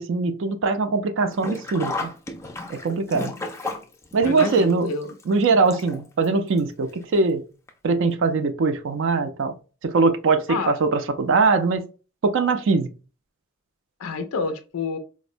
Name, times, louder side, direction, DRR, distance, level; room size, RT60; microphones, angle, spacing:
voice 1, 0.0-2.1 2.7-3.4 4.1-4.9 5.3-7.4 7.8-9.5 9.8-11.9 12.2-12.9, right 4 dB, 60° right, 0.4 m, -21 dB
Sink (filling or washing), 1.3-6.3 6.6-6.7 7.7-7.8 8.1-8.2, left 2 dB, 10° left, 0.3 m, -33 dB
voice 2, 4.2-5.1 10.5-10.8 14.0-15.0, left 4 dB, 85° left, 0.4 m, -28 dB
4.1 x 2.0 x 2.5 m
head